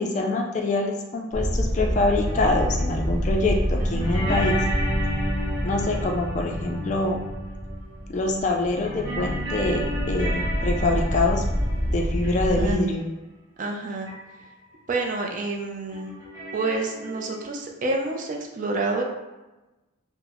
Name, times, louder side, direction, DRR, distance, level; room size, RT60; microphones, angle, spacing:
voice 1, 0.0-4.6 5.6-7.2 8.1-11.4 11.9-13.0, left 2 dB, 35° left, 2 dB, 0.3 m, -25 dB
sound 1, 1.3-12.7, equal, 60° right, 1.1 m, -27 dB
sound 2, 2.2-8.3 8.6-12.7 14.1-14.2 14.4-14.5 15.9-17.4, equal, 20° right, 1.0 m, -33 dB
voice 2, 12.6-12.9 13.6-14.1 14.9-16.1 16.5-19.0, right 3 dB, 40° right, 1 dB, 0.4 m, -28 dB
3.8 x 2.0 x 2.9 m, 1.1 s
head